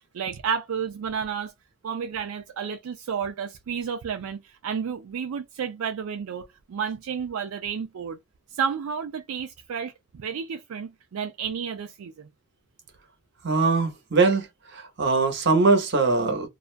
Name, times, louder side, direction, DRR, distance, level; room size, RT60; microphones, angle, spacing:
voice 1, 0.1-1.5 1.8-8.2 8.5-12.3, right 7 dB, 80° right, 0.4 m, -31 dB
voice 2, 13.4-14.5 14.7-16.5, right 4 dB, 55° right, 0.8 m, -21 dB
2.4 x 2.1 x 2.4 m
head